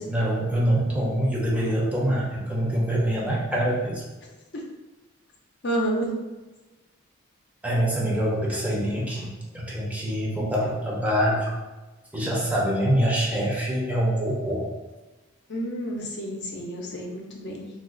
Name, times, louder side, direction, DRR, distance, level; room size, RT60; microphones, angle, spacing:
voice 1, 0.0-4.0 7.6-11.6 12.1-14.6, right 1 dB, 5° right, -4 dB, 0.5 m, -25 dB
voice 2, 5.6-6.1 15.5-17.7, right 1 dB, 55° left, -1 dB, 0.6 m, -29 dB
2.4 x 2.3 x 3.7 m, 1.2 s
head